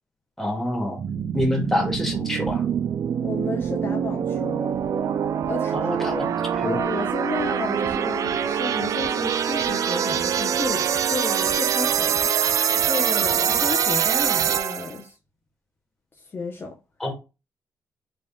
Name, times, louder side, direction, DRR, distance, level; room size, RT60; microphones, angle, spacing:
voice 1, 0.4-1.0 1.3-2.6 5.7-6.8 17.0-17.1, left 1 dB, 5° left, 1.3 m, -26 dB
sound 1, 1.0-15.0, right 8 dB, 55° right, 0.3 m, -24 dB
voice 2, 3.2-4.8 5.5-5.9 6.6-12.1 12.8-15.2 16.1-16.8, left 3 dB, 35° left, 0.7 m, -32 dB
4.0 x 3.5 x 2.3 m
cardioid pair, 105°, 7 cm